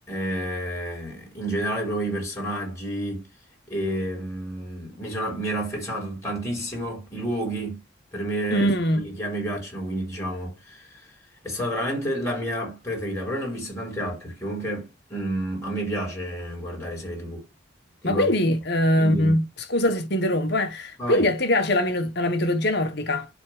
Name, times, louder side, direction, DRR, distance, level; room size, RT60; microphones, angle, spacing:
voice 1, 0.1-3.3 3.7-7.8 8.1-8.7 9.0-10.9 11.4-17.4 18.0-18.3 19.0-19.4 21.0-21.3, right 1 dB, 15° left, 4.2 m, -30 dB
voice 2, 8.5-9.0 18.0-19.4 19.7-23.3, left 1 dB, 55° left, 1.3 m, -22 dB
11.0 x 3.7 x 3.3 m
head